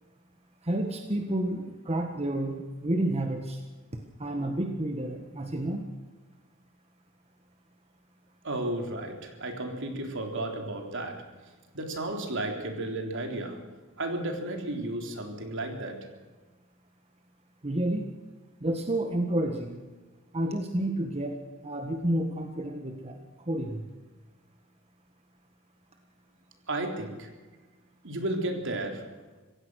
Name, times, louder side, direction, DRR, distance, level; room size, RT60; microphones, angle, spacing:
voice 1, 0.6-3.6 3.9-5.8 17.6-18.1 18.6-19.8 20.3-23.2 23.5-23.8, right 1 dB, 30° right, 4 dB, 1.6 m, -30 dB
voice 2, 8.4-11.3 11.7-13.6 14.0-16.1 26.7-27.3 28.0-29.1, right 1 dB, 60° right, 4 dB, 3.8 m, -33 dB
26.0 x 16.5 x 6.4 m, 1.3 s
head